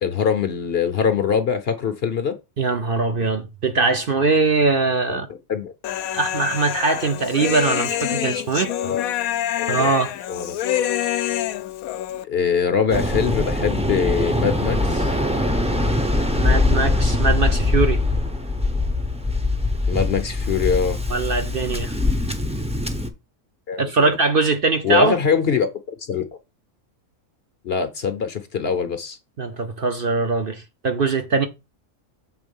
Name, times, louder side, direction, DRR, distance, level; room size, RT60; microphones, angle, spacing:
voice 1, 0.0-2.3 5.1-5.2 5.5-5.7 6.0-6.1 8.8-9.0 9.6-9.9 10.3-10.6 12.3-15.1 19.9-21.0 23.7-24.2 24.8-26.2 27.6-29.2, left 6 dB, 50° left, 0.9 m, -23 dB
voice 2, 2.6-5.3 6.1-8.7 9.7-10.1 16.3-18.0 21.1-21.9 23.8-25.2 29.4-31.5, right 3 dB, 50° right, 0.8 m, -21 dB
Human voice, 5.8-12.2, left 12 dB, 85° left, 1.0 m, -26 dB
Waves surf, 12.9-23.1, left 2 dB, 5° right, 0.6 m, -22 dB
7.1 x 3.7 x 5.3 m
omnidirectional pair, 1.5 m